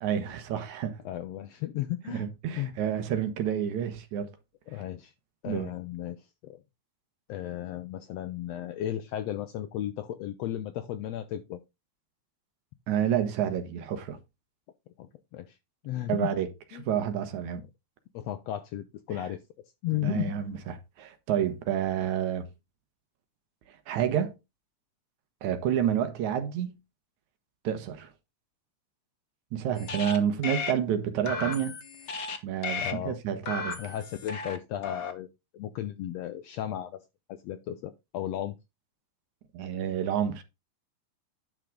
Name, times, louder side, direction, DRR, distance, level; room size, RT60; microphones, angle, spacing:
voice 1, 0.0-1.0 2.1-4.3 5.5-5.7 12.9-14.2 16.1-16.5 16.8-17.6 19.9-22.5 23.9-24.3 25.4-26.8 27.6-28.1 29.5-31.8 32.4-33.8 39.5-40.4, right 9 dB, 75° right, 2.5 m, -29 dB
voice 2, 1.0-2.3 2.6-2.7 4.7-5.1 5.4-6.6 7.3-11.6 15.0-15.6 15.8-16.3 16.7-16.8 18.1-19.4 19.8-20.4 31.4-31.5 32.8-33.2 33.8-35.3 35.5-37.0 37.3-38.6, left 12 dB, 80° left, 1.5 m, -35 dB
sound 1, 29.8-30.2 30.4-30.7 31.3-32.4 32.6-32.9 33.5-34.6 34.8-35.1, left 5 dB, 50° left, 1.3 m, -35 dB
9.9 x 6.0 x 3.7 m
omnidirectional pair, 3.5 m